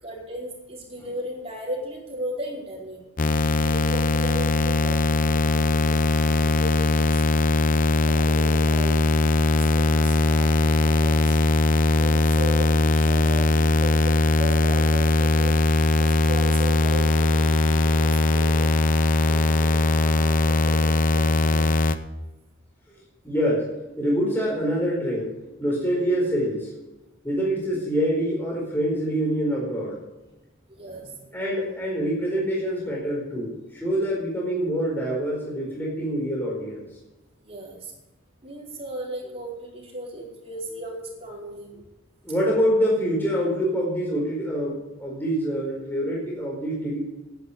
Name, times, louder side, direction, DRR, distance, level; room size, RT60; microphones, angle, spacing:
voice 1, 0.0-3.1 3.6-7.2 7.9-11.4 11.9-15.6 16.0-18.7 19.2-21.8 30.7-31.4 37.4-37.9 38.4-41.8, right 1 dB, 30° right, -3 dB, 4.8 m, -36 dB
sound 1, 3.2-22.0, left 2 dB, 45° left, 0.7 m, -20 dB
voice 2, 22.9-23.7 24.0-25.3 25.6-26.7 27.2-30.0 31.3-36.9 42.2-47.0, equal, 10° left, -4 dB, 4.6 m, -25 dB
11.5 x 10.5 x 8.5 m, 1.0 s
head